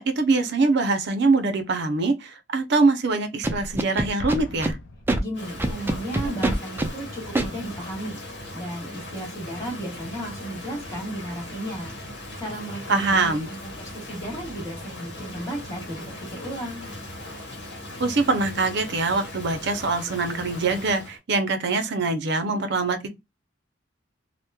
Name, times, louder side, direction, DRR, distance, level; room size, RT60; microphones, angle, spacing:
voice 1, 0.0-4.8 12.9-13.5 18.0-23.1, right 3 dB, 60° right, 0.6 m, -23 dB
Scratching (performance technique), 3.4-4.7 5.1-5.2 5.6-6.9 7.4-7.5, right 2 dB, 10° right, 0.3 m, -24 dB
Explosion, 4.2-5.9, left 1 dB, 85° left, 0.6 m, -39 dB
voice 2, 5.2-8.2 8.5-11.9 12.4-16.8, right 1 dB, 15° left, 1.4 m, -34 dB
Rain, 5.3-21.2, left 1 dB, 65° left, 1.0 m, -39 dB
2.9 x 2.1 x 2.2 m
head